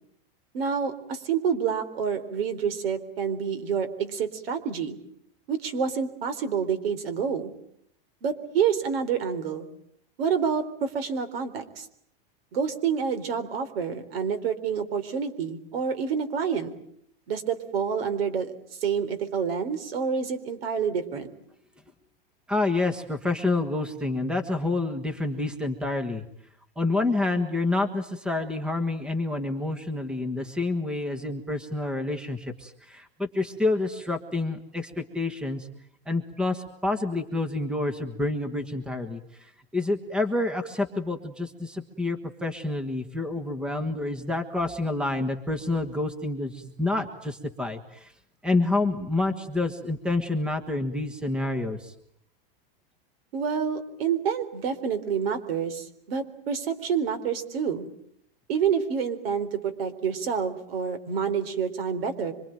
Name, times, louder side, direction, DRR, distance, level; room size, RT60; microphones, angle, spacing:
voice 1, 0.5-5.0 5.5-7.5 8.2-9.7 10.2-11.9 12.5-16.7 17.3-18.5 18.8-21.3 53.3-57.8 58.5-62.3, right 7 dB, 75° right, 11 dB, 3.9 m, -28 dB
voice 2, 22.5-26.2 26.8-35.7 36.1-48.1 48.4-51.9, left 2 dB, 5° right, 9 dB, 1.4 m, -28 dB
25.5 x 23.5 x 9.1 m, 0.69 s
supercardioid pair, 165°, 30 cm